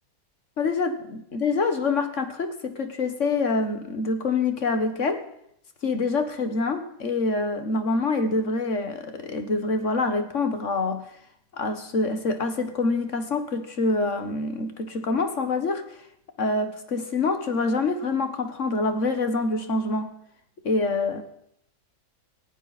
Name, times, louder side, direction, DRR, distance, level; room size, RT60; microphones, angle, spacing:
voice 1, 0.6-5.2 5.8-11.0 11.5-15.8 16.4-20.1 20.6-21.2, left 3 dB, 45° left, 8 dB, 1.6 m, -26 dB
18.5 x 17.5 x 4.2 m, 0.73 s
omnidirectional pair, 1.9 m